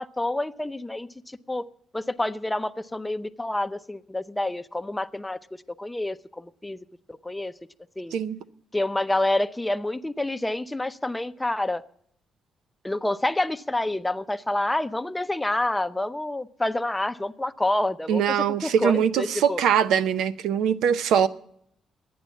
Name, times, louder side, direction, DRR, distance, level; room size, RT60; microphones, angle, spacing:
voice 1, 0.0-1.6 1.9-6.8 7.2-7.5 8.0-8.1 8.7-11.8 12.8-18.2 18.6-19.6, left 1 dB, 10° left, 0.6 m, -28 dB
voice 2, 18.1-21.3, right 8 dB, 80° right, 0.7 m, -22 dB
12.5 x 9.5 x 8.3 m
cardioid pair, 90°, 0 cm